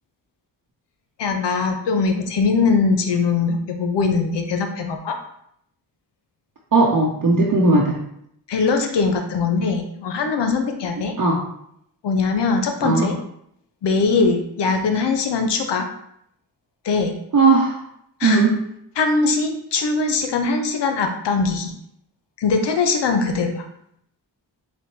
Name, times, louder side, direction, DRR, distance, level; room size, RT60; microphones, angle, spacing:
voice 1, 1.2-5.2 8.5-11.1 12.0-13.2 13.8-15.9 16.8-17.2 18.2-18.4 19.0-21.7 22.4-23.6, left 4 dB, 70° left, 5 dB, 0.7 m, -21 dB
voice 2, 6.7-8.0 11.2-11.4 12.8-13.1 17.3-17.8 18.2-18.6, right 3 dB, 45° right, -4 dB, 0.9 m, -17 dB
4.1 x 2.2 x 4.5 m, 0.73 s
supercardioid pair, 40°, 43 cm